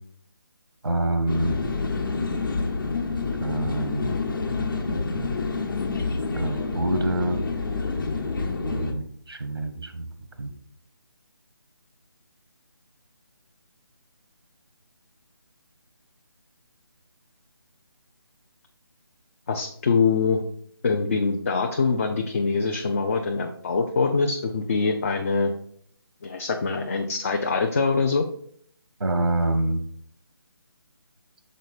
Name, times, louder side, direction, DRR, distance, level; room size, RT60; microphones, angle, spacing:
voice 1, 0.8-1.6 3.3-4.1 6.3-7.5 8.6-10.1 10.4-10.5 29.0-29.8, right 2 dB, 90° right, 7 dB, 1.1 m, -26 dB
sound 1, 1.3-8.9, left 4 dB, 60° left, 1.2 m, -28 dB
voice 2, 19.5-20.4 20.8-25.5 26.2-28.3, left 4 dB, 35° left, 4 dB, 0.5 m, -24 dB
6.5 x 4.1 x 4.1 m, 0.62 s
figure-of-eight pair, 155°, 13 cm